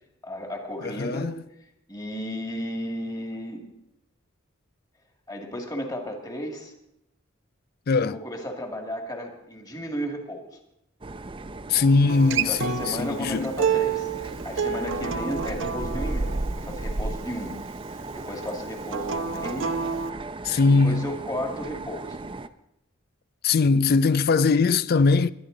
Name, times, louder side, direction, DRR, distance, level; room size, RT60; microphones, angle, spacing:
voice 1, 0.2-1.3 1.9-3.6 5.3-6.7 8.1-10.5 12.5-17.5 17.9-19.8 20.6-22.2, equal, 20° left, 2.1 m, -34 dB
voice 2, 0.8-1.4 7.9-8.2 11.7-13.5 20.4-21.1 23.4-25.3, left 4 dB, 50° left, 0.4 m, -21 dB
sound 1, 11.0-22.5, right 2 dB, 25° right, 0.5 m, -35 dB
Acoustic guitar, 12.1-17.3 18.9-20.1, right 6 dB, 70° right, 0.7 m, -29 dB
22.0 x 11.0 x 3.9 m
head